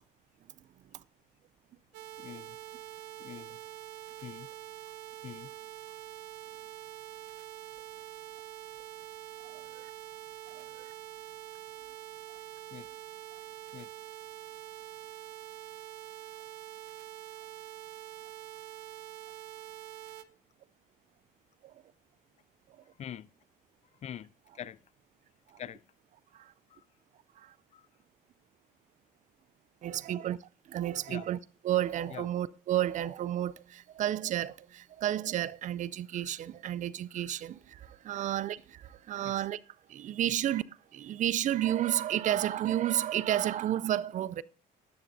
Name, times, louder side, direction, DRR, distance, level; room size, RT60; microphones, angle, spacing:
sound 1, 1.9-20.2, right 14 dB, 80° right, 0.8 m, -45 dB
voice 1, 2.2-2.6 3.2-3.6 4.2-4.5 5.2-5.5 12.7-12.9 13.7-13.9 23.0-23.3 24.0-24.3 24.5-24.8 25.6-25.8 26.7-26.8 27.7-27.9 31.1-31.3 32.1-32.3 39.2-39.5 40.2-40.3, left 10 dB, 40° left, 0.4 m, -44 dB
voice 2, 9.5-9.9 10.5-10.9 21.6-21.7 26.3-26.5 27.4-27.5 29.8-31.4 31.6-39.6 39.9-40.6 40.9-44.4, right 12 dB, 45° right, 0.4 m, -32 dB
18.5 x 6.9 x 2.7 m
cardioid pair, 110°, 17 cm